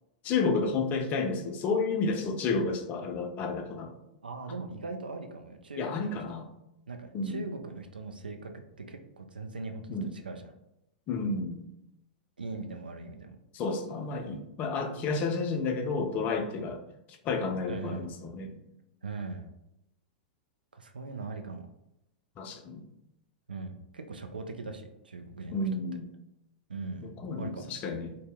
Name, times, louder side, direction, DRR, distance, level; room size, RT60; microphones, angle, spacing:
voice 1, 0.2-3.9 5.8-6.5 7.1-7.5 9.9-10.1 11.1-11.6 13.5-16.8 17.1-18.6 22.4-22.9 25.5-26.1 27.0-28.2, left 4 dB, 35° left, 5 dB, 0.4 m, -31 dB
voice 2, 4.2-6.2 6.9-10.0 10.2-10.4 12.4-13.4 17.7-18.3 19.0-19.5 20.7-21.7 23.5-25.6 26.7-27.1 27.4-27.7, right 3 dB, 85° right, 5 dB, 0.4 m, -40 dB
2.7 x 2.1 x 3.4 m, 0.87 s
figure-of-eight pair, 100°, 5 cm